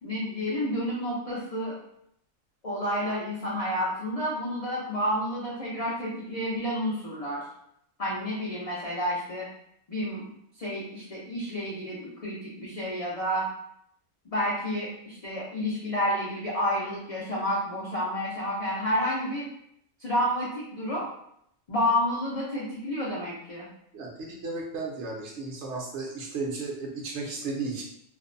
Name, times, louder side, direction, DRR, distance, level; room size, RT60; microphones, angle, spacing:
voice 1, 0.0-1.8 2.6-7.4 8.0-9.5 9.9-10.3 10.6-13.5 14.3-19.5 20.0-21.1 21.7-23.7, equal, 75° left, -6 dB, 0.3 m, -30 dB
voice 2, 23.9-27.8, right 3 dB, 65° right, -1 dB, 0.8 m, -34 dB
2.5 x 2.0 x 2.5 m, 0.72 s
omnidirectional pair, 1.4 m